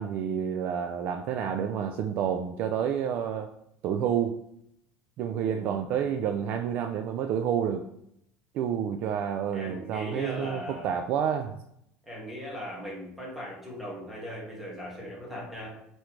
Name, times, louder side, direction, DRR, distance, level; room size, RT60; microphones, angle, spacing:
voice 1, 0.0-3.5 3.8-4.4 5.2-7.9 8.5-11.6, right 8 dB, 45° right, 7 dB, 0.4 m, -29 dB
voice 2, 5.3-5.8 9.5-10.9 12.0-15.8, equal, 5° right, -4 dB, 2.0 m, -39 dB
8.3 x 4.6 x 3.3 m, 0.76 s
cardioid pair, 155°, 4 cm